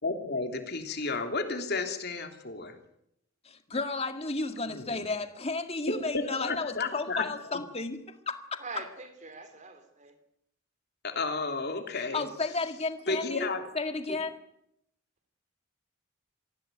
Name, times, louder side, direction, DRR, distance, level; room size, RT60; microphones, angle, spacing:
voice 1, 0.0-2.8 4.7-5.1 5.9-7.2 11.0-12.2 13.1-13.7, left 3 dB, 55° left, 5 dB, 3.3 m, -32 dB
voice 2, 3.4-8.6 12.1-13.5 13.7-14.4, left 3 dB, 30° left, 7 dB, 1.9 m, -33 dB
voice 3, 8.6-10.1, right 3 dB, 35° right, 8 dB, 3.6 m, -43 dB
24.0 x 16.0 x 9.2 m, 0.78 s
head